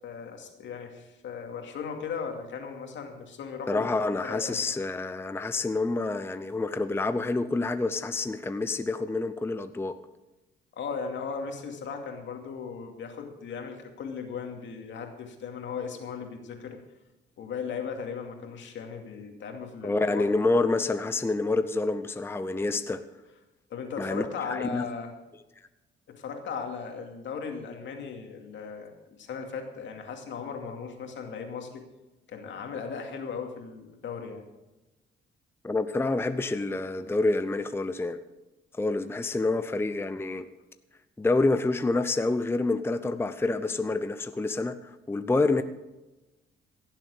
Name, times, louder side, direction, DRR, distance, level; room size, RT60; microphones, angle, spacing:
voice 1, 0.0-3.9 4.2-4.7 10.8-16.8 17.4-20.3 23.7-25.1 26.2-28.9 29.2-31.8 32.3-34.4, left 6 dB, 70° left, 3 dB, 2.4 m, -37 dB
voice 2, 3.7-10.0 19.8-23.0 24.0-24.9 35.6-38.2 38.8-40.5 41.2-45.6, left 3 dB, 10° left, 11 dB, 0.6 m, -27 dB
16.5 x 7.5 x 6.5 m, 1.0 s
cardioid pair, 90°, 20 cm